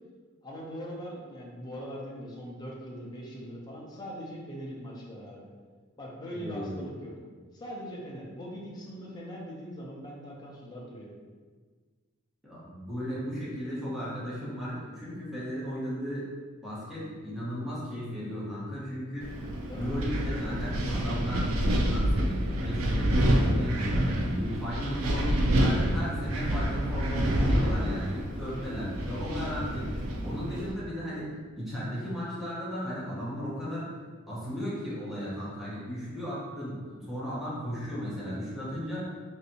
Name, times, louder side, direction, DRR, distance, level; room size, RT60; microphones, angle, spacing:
voice 1, 0.4-5.4 6.0-7.1 7.5-11.1 19.6-19.9 30.3-30.6, equal, 20° left, -4 dB, 0.6 m, -41 dB
voice 2, 6.3-6.9 12.4-16.2 16.6-19.3 19.7-29.9 30.2-33.9 34.3-39.3, equal, ahead, -10 dB, 1.0 m, -35 dB
Wind, 19.2-30.7, equal, 80° right, 0.4 m, -28 dB
3.2 x 2.7 x 2.7 m, 1.5 s
head